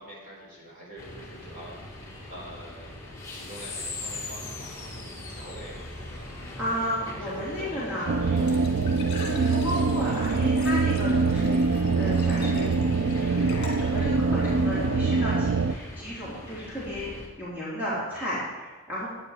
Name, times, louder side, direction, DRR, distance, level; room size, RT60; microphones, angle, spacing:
voice 1, 0.0-3.0 3.3-6.4 7.2-8.5, right 1 dB, 40° right, -5 dB, 4.2 m, -45 dB
sound 1, 1.0-17.3, left 1 dB, 15° left, 1.7 m, -39 dB
voice 2, 6.6-8.6 9.2-12.7 13.2-19.1, equal, 10° right, -10 dB, 3.2 m, -33 dB
Glass / Trickle dribble / Fill (with liquid), 8.1-14.9, left 3 dB, 50° left, 2.1 m, -45 dB
sound 2, 8.1-15.7, right 4 dB, 65° right, 0.4 m, -24 dB
11.0 x 9.1 x 4.9 m, 1.3 s
head